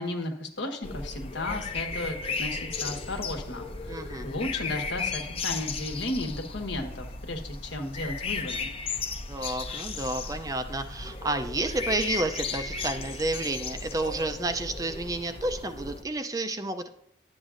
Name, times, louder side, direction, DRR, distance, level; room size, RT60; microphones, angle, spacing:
voice 1, 0.0-8.7, left 2 dB, 75° left, 4 dB, 1.3 m, -34 dB
sound 1, 0.8-16.0, left 4 dB, 30° left, 0.6 m, -35 dB
voice 2, 3.9-4.3 9.3-16.9, right 2 dB, 20° right, 7 dB, 0.4 m, -30 dB
11.5 x 8.0 x 2.5 m, 0.75 s
head